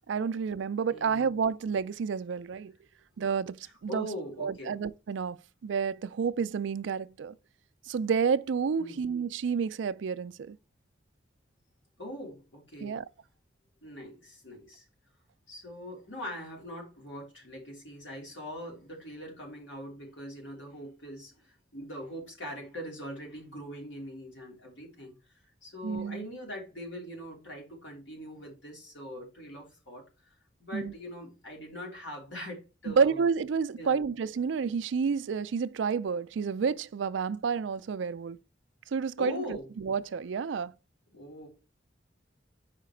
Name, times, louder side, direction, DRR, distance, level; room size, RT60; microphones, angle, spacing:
voice 1, 0.1-2.7 3.2-4.1 4.4-5.4 5.6-7.3 7.9-10.6 12.8-13.1 25.8-26.2 30.7-30.9 32.9-38.4 38.9-39.4 39.8-40.7, right 6 dB, 80° right, 0.4 m, -30 dB
voice 2, 0.9-1.3 3.6-4.8 8.8-9.0 12.0-13.0 13.8-14.8 15.5-25.1 25.6-30.0 30.6-33.2 33.8-34.1 39.2-39.7 41.1-41.5, equal, 85° left, 3.3 m, -42 dB
5.6 x 5.0 x 4.4 m
head